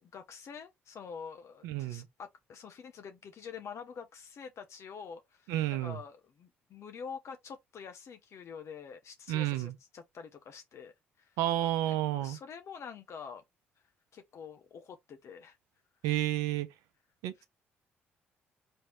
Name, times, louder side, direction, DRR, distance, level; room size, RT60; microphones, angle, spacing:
voice 1, 0.0-11.4 11.9-13.4 14.1-15.6 17.4-17.5, left 6 dB, 60° left, 0.9 m, -47 dB
voice 2, 1.6-2.1 5.5-6.0 9.3-9.7 11.4-12.4 16.0-16.7 17.2-17.5, right 14 dB, 80° right, 0.7 m, -31 dB
4.5 x 3.2 x 3.1 m
hypercardioid pair, 55°, 6 cm